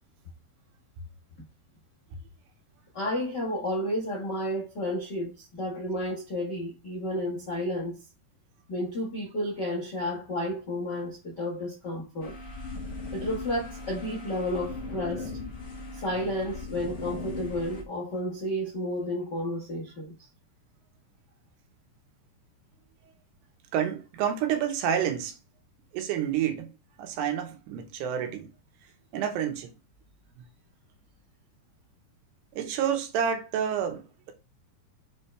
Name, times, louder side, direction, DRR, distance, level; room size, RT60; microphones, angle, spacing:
voice 1, 2.9-8.0 8.7-12.4 13.1-15.3 15.9-20.3, left 1 dB, 90° left, 0.9 m, -31 dB
sound 1, 12.2-17.8, left 3 dB, 55° left, 1.7 m, -38 dB
voice 2, 23.7-25.4 25.9-26.7 27.0-28.5 29.1-29.7 32.5-34.3, right 8 dB, 90° right, 3.2 m, -29 dB
7.4 x 4.4 x 3.3 m
omnidirectional pair, 4.7 m